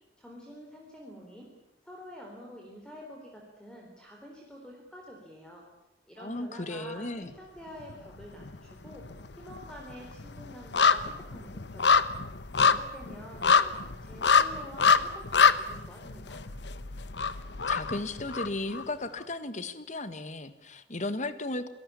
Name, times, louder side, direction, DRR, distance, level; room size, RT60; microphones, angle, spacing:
voice 1, 0.2-1.5 1.8-5.7 6.1-12.1 12.6-16.4, equal, 5° left, 0 dB, 4.0 m, -48 dB
voice 2, 6.2-7.3 17.7-21.7, left 2 dB, 45° left, 11 dB, 1.7 m, -35 dB
sound 1, 7.8-8.6 8.9-18.8 19.2-19.3, left 5 dB, 75° left, 1.1 m, -26 dB
27.0 x 18.5 x 8.5 m, 0.91 s
head